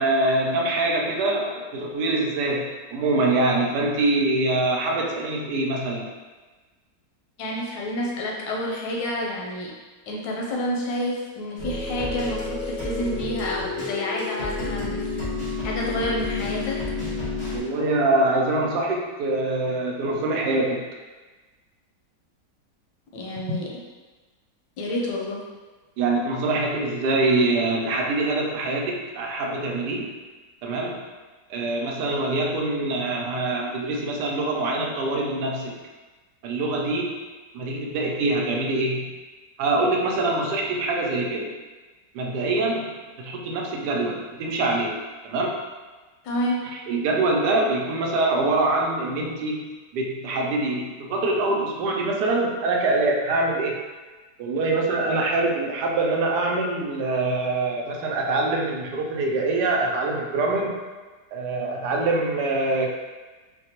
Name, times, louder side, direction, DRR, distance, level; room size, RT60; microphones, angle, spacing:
voice 1, 0.0-6.1 17.5-20.8 26.0-30.2 30.6-31.0 31.5-35.8 36.4-37.2 37.5-39.1 39.6-41.5 42.1-45.0 45.2-45.6 46.9-49.7 49.9-53.8 54.4-60.8 61.3-62.9, right 2 dB, 75° right, 0 dB, 1.1 m, -24 dB
voice 2, 7.4-9.7 10.1-15.2 15.6-16.8 23.1-23.7 24.8-25.4 46.2-46.6, left 1 dB, 90° left, -2 dB, 1.4 m, -29 dB
sound 1, 11.6-17.6, left 3 dB, 25° left, 1.0 m, -30 dB
4.1 x 2.2 x 2.8 m, 1.3 s
omnidirectional pair, 1.9 m